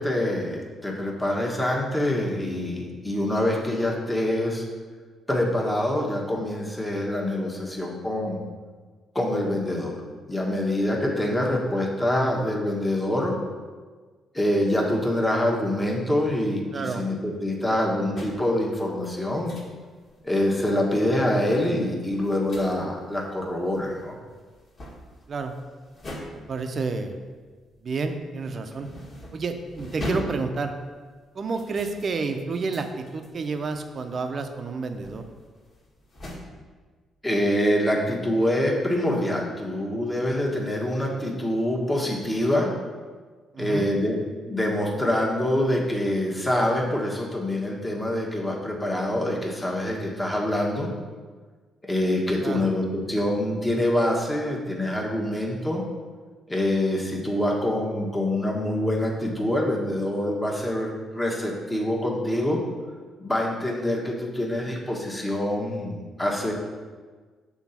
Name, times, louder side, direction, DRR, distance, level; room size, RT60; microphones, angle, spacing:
voice 1, 0.0-4.6 5.3-8.4 9.1-10.0 10.3-13.4 14.3-19.5 20.2-24.2 37.2-42.7 43.6-44.2 44.5-50.9 51.8-55.8 56.5-62.6 63.2-66.5, left 1 dB, 10° left, -1 dB, 1.3 m, -25 dB
voice 2, 16.7-17.0 25.3-25.5 26.3-27.2 27.8-28.9 29.3-30.7 31.3-35.2 43.5-43.9 52.4-52.7, right 4 dB, 45° right, 6 dB, 0.7 m, -30 dB
sound 1, 18.2-18.6 19.0-19.8 20.0-20.5 21.0-27.9 28.2-36.4, equal, 45° left, 1.7 m, -41 dB
6.1 x 3.9 x 5.7 m, 1.5 s
cardioid pair, 90°, 0 cm